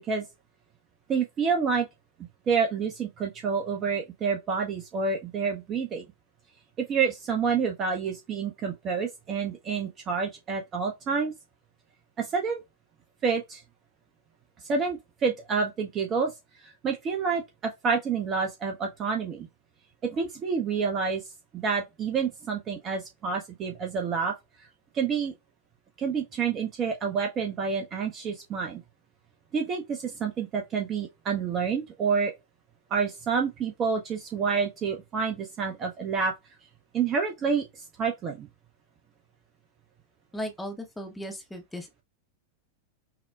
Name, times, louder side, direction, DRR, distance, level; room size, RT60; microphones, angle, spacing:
voice 1, 1.1-1.9 2.5-6.0 6.8-11.3 12.2-12.6 13.2-13.6 14.6-16.3 16.6-19.5 20.0-21.2 21.5-24.3 24.9-25.3 26.0-28.8 29.5-32.3 32.9-36.3 36.9-38.5, right 5 dB, 30° right, 0.7 m, -28 dB
voice 2, 40.3-42.0, equal, 5° left, 0.7 m, -37 dB
5.7 x 2.2 x 2.3 m
figure-of-eight pair, 90°, 0 cm